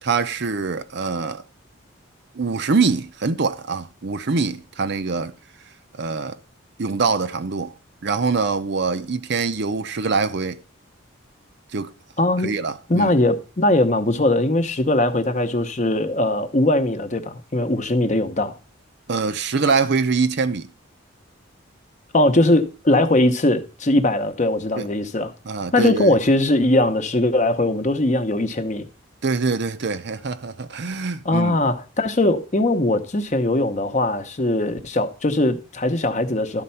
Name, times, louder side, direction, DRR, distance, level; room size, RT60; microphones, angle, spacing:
voice 1, 0.0-1.4 2.3-5.3 6.0-6.4 6.8-7.7 8.0-10.6 11.7-11.9 12.4-13.1 19.1-20.7 24.8-24.9 25.4-26.2 29.2-31.6, right 4 dB, 55° right, 0.6 m, -24 dB
voice 2, 12.2-12.6 12.9-18.5 22.1-25.3 25.7-28.8 31.2-36.6, left 1 dB, 35° left, 0.8 m, -20 dB
12.5 x 4.3 x 5.6 m
head